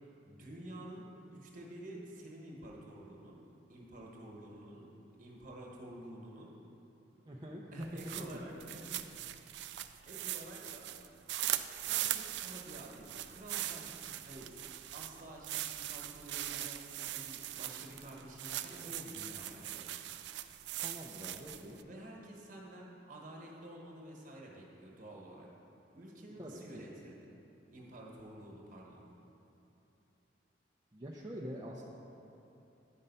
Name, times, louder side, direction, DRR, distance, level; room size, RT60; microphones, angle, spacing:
voice 1, 0.2-3.4 3.7-4.9 5.2-6.5 7.7-9.3 10.0-10.9 11.9-14.7 14.9-19.8 21.8-25.5 25.9-27.3 27.7-29.0, right 1 dB, 45° right, -2 dB, 1.3 m, -50 dB
voice 2, 7.3-7.9 20.8-21.8 26.4-26.9 30.9-31.8, equal, 20° right, -4 dB, 0.5 m, -45 dB
sound 1, 7.8-21.8, right 13 dB, 65° right, 0.3 m, -40 dB
10.0 x 5.4 x 5.4 m, 2.9 s
head